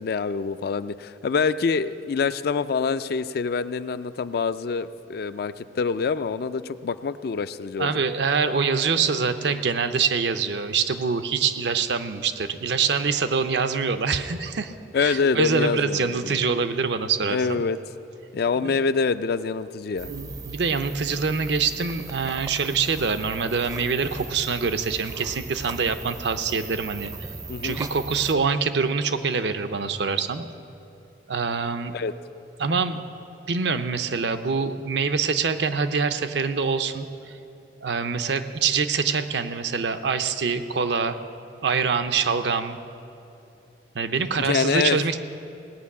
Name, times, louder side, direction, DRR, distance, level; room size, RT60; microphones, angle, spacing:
voice 1, 0.0-8.0 14.9-16.4 17.3-17.8 18.3-20.1 27.5-27.8 31.9-32.1 44.3-45.0, left 5 dB, 55° left, 13 dB, 0.4 m, -25 dB
voice 2, 7.8-14.7 15.0-17.6 18.6-18.8 20.1-27.1 27.6-30.4 31.3-32.0 32.6-33.0 33.5-37.1 37.8-41.2 41.6-42.8 43.9-45.2, right 5 dB, 70° right, 9 dB, 0.6 m, -25 dB
sound 1, 20.0-28.3, right 3 dB, 20° right, 0.5 m, -39 dB
18.0 x 6.1 x 8.4 m, 2.7 s
head